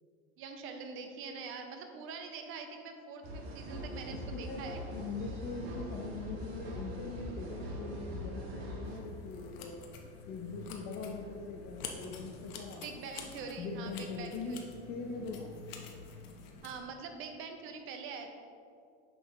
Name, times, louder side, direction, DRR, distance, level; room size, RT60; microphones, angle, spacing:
voice 1, 0.4-4.8 12.7-14.7 16.6-18.3, right 5 dB, 40° right, 5 dB, 0.7 m, -44 dB
sound 1, 3.2-9.0, equal, 65° right, 1.5 m, -42 dB
voice 2, 4.1-9.9 10.3-13.0 13.6-15.5, left 4 dB, 30° left, 1 dB, 0.5 m, -42 dB
sound 2, 8.8-16.8, left 5 dB, 65° left, 1.0 m, -48 dB
6.3 x 6.1 x 3.1 m, 2.4 s
supercardioid pair, 135°, 32 cm